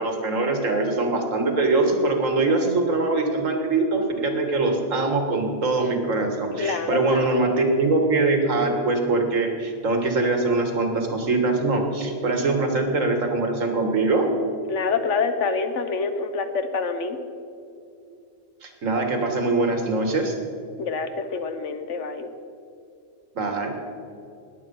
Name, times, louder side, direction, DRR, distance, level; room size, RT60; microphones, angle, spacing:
voice 1, 0.0-14.3 18.6-20.3 23.4-23.8, right 3 dB, 70° right, 4 dB, 2.0 m, -23 dB
voice 2, 6.6-7.2 14.7-17.2 20.8-22.3, left 4 dB, 65° left, 9 dB, 1.2 m, -26 dB
20.0 x 8.1 x 5.4 m, 2.5 s
omnidirectional pair, 1.4 m